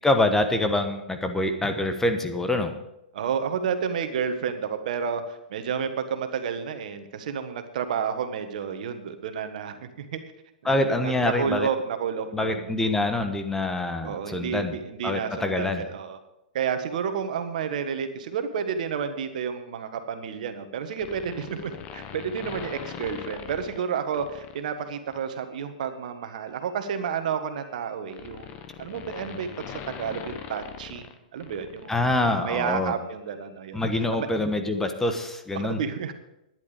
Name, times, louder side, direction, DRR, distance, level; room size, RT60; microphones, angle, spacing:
voice 1, 0.0-2.7 10.6-11.7 12.3-14.8 15.0-15.8 31.9-32.9 33.7-35.8, left 2 dB, 10° left, 6 dB, 1.2 m, -25 dB
voice 2, 3.1-10.2 10.6-12.7 14.0-16.2 16.5-28.5 28.8-29.5 29.9-33.8 34.1-34.3 35.5-36.1, right 7 dB, 60° right, 8 dB, 1.5 m, -31 dB
sound 1, 20.9-24.6 25.1-25.3 26.5-31.9 32.1-32.2, left 8 dB, 35° left, 1.2 m, -41 dB
12.0 x 10.5 x 5.2 m, 0.87 s
hypercardioid pair, 120°, 5 cm